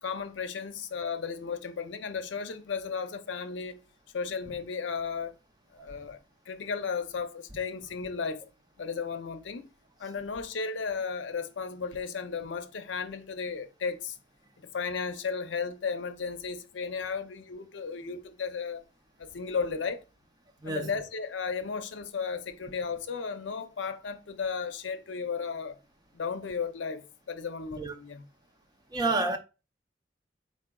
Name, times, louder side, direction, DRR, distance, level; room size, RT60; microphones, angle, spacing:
voice 1, 0.0-3.8 4.1-5.3 5.7-6.2 6.5-8.4 8.8-9.7 10.0-14.2 14.6-18.8 19.2-20.0 20.6-25.8 26.1-28.3, left 5 dB, 75° left, 0.5 m, -34 dB
voice 2, 28.9-29.4, right 3 dB, 20° right, 0.5 m, -28 dB
4.7 x 4.2 x 2.2 m
head